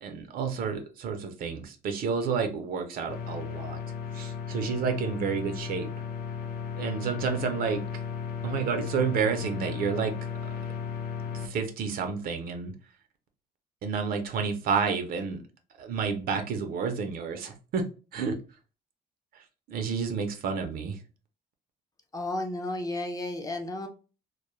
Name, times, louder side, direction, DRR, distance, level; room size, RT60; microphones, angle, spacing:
voice 1, 0.0-3.8 4.1-5.9 6.7-7.8 8.4-10.1 11.3-12.7 13.8-15.4 15.8-17.9 18.1-18.4 19.7-21.0, right 6 dB, 60° right, 7 dB, 0.6 m, -30 dB
sound 1, 3.1-11.5, left 6 dB, 70° left, 0.5 m, -35 dB
voice 2, 22.1-23.9, left 2 dB, 20° left, 4 dB, 0.5 m, -32 dB
2.3 x 2.1 x 3.0 m, 0.34 s
cardioid pair, 110°, 17 cm